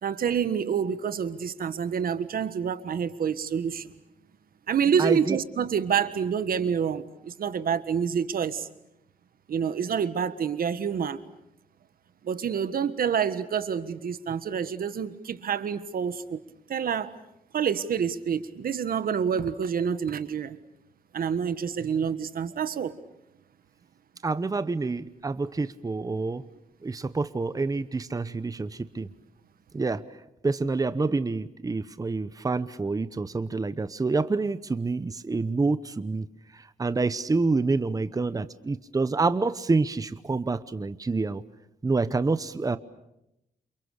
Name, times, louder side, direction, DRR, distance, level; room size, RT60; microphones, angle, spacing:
voice 1, 0.0-4.0 4.7-8.7 9.5-11.2 12.2-16.4 16.7-17.1 17.5-20.6 21.1-22.9, right 7 dB, 75° right, 13 dB, 1.6 m, -27 dB
voice 2, 5.0-5.4 24.2-26.4 26.8-29.1 29.7-30.0 30.4-36.2 36.5-41.4 41.8-42.8, right 3 dB, 25° right, 13 dB, 1.0 m, -27 dB
29.0 x 28.5 x 6.6 m, 0.84 s
wide cardioid pair, 115°, 15 cm